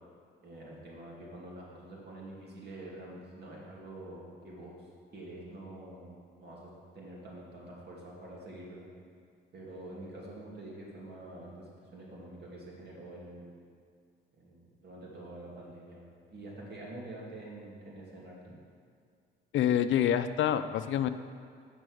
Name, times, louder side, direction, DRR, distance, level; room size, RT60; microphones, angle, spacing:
voice 1, 0.4-4.8 5.1-8.8 9.5-13.6 14.4-18.5, right 1 dB, 55° right, -4 dB, 2.3 m, -46 dB
voice 2, 19.5-21.1, left 10 dB, 70° left, 11 dB, 0.5 m, -27 dB
9.0 x 6.0 x 6.3 m, 2.2 s
cardioid pair, 90°, 20 cm